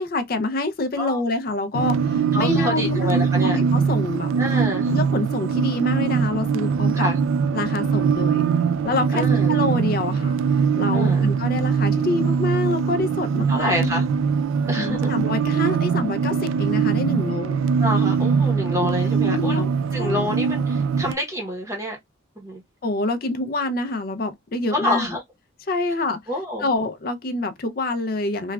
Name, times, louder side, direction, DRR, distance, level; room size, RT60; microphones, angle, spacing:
voice 1, 0.0-4.6 4.9-7.1 7.5-8.4 8.8-10.4 10.8-13.9 14.7-17.6 18.8-18.9 19.3-19.7 20.0-20.3 22.8-25.2 25.7-26.2 26.6-28.5, left 2 dB, 50° left, 0.5 m, -26 dB
sound 1, 1.7-21.1, right 6 dB, 85° right, 0.3 m, -22 dB
voice 2, 2.3-3.6 4.4-4.9 6.9-7.2 9.1-9.6 10.9-11.3 13.5-14.0 14.6-15.1 17.8-22.0 22.4-22.6 24.7-25.2 26.3-26.7, left 1 dB, 15° right, 0.8 m, -27 dB
3.1 x 2.3 x 2.2 m
head